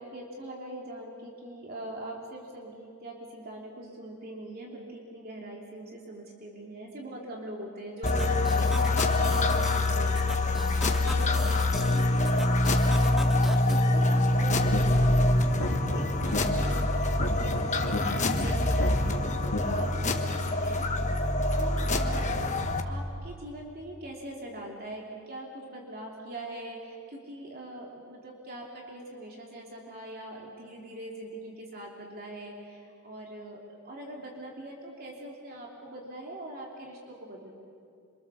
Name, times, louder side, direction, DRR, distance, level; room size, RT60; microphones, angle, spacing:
voice 1, 0.0-10.7 11.0-15.0 15.8-16.8 17.4-20.9 21.6-22.5 22.8-37.5, right 1 dB, 45° right, -1 dB, 3.2 m, -42 dB
sound 1, 8.0-22.8, left 2 dB, 35° left, 1.4 m, -25 dB
sound 2, 8.0-13.8, equal, ahead, 1.5 m, -41 dB
sound 3, 14.6-15.1 15.4-16.4 17.0-18.0 18.6-19.6, left 1 dB, 55° left, 3.4 m, -33 dB
27.0 x 25.0 x 7.1 m, 2.4 s
head